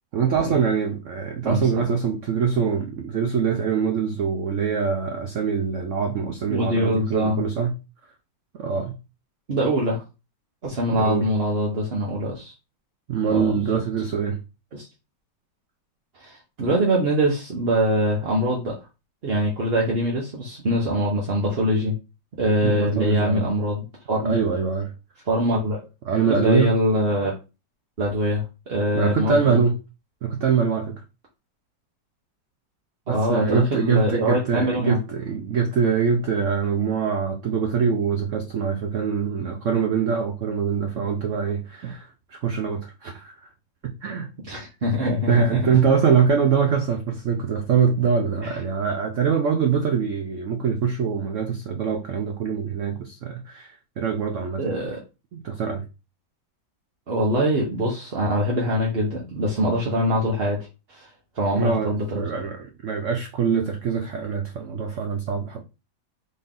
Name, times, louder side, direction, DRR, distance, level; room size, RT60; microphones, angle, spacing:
voice 1, 0.1-7.7 8.6-9.0 10.9-11.3 13.1-14.4 22.6-23.5 24.2-24.9 26.0-26.8 28.9-29.8 30.2-31.0 33.1-43.3 43.8-44.3 45.3-54.8 55.3-55.8 61.5-65.6, right 6 dB, 75° right, 0.6 m, -24 dB
voice 2, 1.4-1.9 6.5-7.4 9.5-10.0 10.6-12.5 13.3-13.8 14.7-14.9 16.2-18.7 19.2-21.9 22.4-24.3 25.3-25.8 26.3-27.3 28.0-29.6 33.1-35.0 44.5-45.7 48.4-48.5 54.6-55.0 57.1-60.6 60.9-61.1 61.4-62.2, equal, 40° right, 1.0 m, -23 dB
4.2 x 3.4 x 3.7 m
omnidirectional pair, 2.1 m